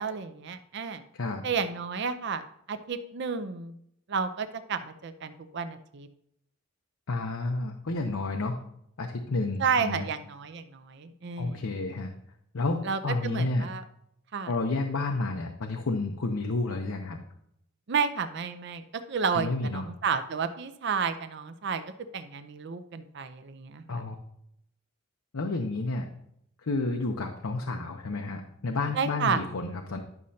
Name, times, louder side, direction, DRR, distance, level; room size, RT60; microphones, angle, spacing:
voice 1, 0.0-1.0 1.4-2.4 2.7-3.7 4.1-6.1 9.6-11.7 12.8-13.8 14.3-14.5 17.9-21.8 22.1-24.0 28.9-29.4, right 6 dB, 55° right, 9 dB, 0.5 m, -31 dB
voice 2, 7.1-8.6 9.0-10.1 11.4-12.1 12.5-13.6 14.5-17.2 19.3-19.8 23.9-24.2 25.3-26.1 26.6-30.0, left 3 dB, 90° left, 3 dB, 0.7 m, -30 dB
11.0 x 6.3 x 2.8 m, 0.74 s
head